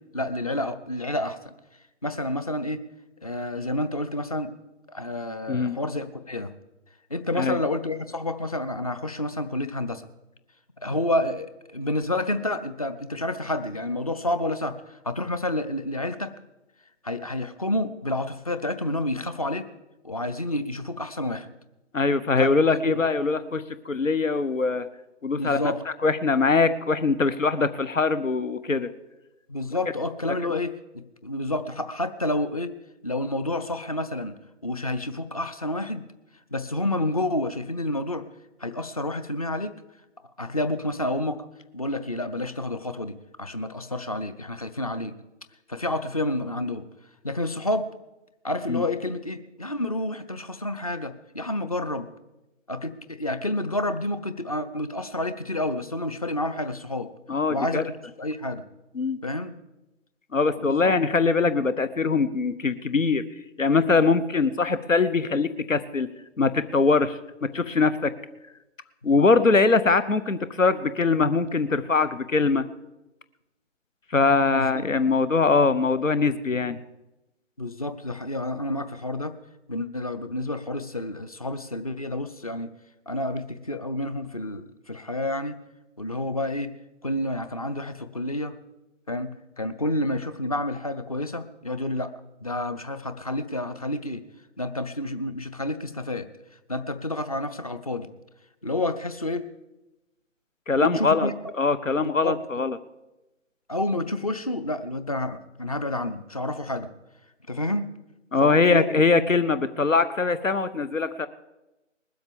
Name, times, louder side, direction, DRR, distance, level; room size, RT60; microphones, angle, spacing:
voice 1, 0.0-1.5 2.0-2.8 3.2-4.5 4.9-6.5 7.1-10.1 10.8-16.3 17.0-19.7 20.0-21.5 22.4-23.0 25.3-25.8 29.5-32.8 33.0-34.3 34.6-36.0 36.5-38.3 38.6-39.8 40.4-41.4 41.7-45.2 45.7-46.8 47.2-47.9 48.4-52.1 52.7-57.1 57.5-58.6 59.2-59.5 60.6-60.9 69.4-69.5 74.5-74.9 77.6-79.3 79.7-82.7 83.1-85.6 86.0-86.7 87.0-88.5 89.1-92.1 92.4-94.2 94.6-96.3 96.7-98.1 98.6-99.5 100.8-101.3 102.0-102.6 103.7-106.9 107.5-107.9 108.4-109.0, left 1 dB, 30° left, 10 dB, 0.6 m, -29 dB
voice 2, 21.9-24.9 25.2-25.6 26.0-28.9 48.7-48.8 57.3-57.8 59.0-59.2 60.3-63.2 63.6-66.1 66.4-68.1 69.0-72.7 74.1-76.8 100.7-101.3 101.6-102.8 108.3-111.3, left 4 dB, 85° left, 13 dB, 0.9 m, -22 dB
20.5 x 7.9 x 6.9 m, 1.0 s
figure-of-eight pair, 150°, 38 cm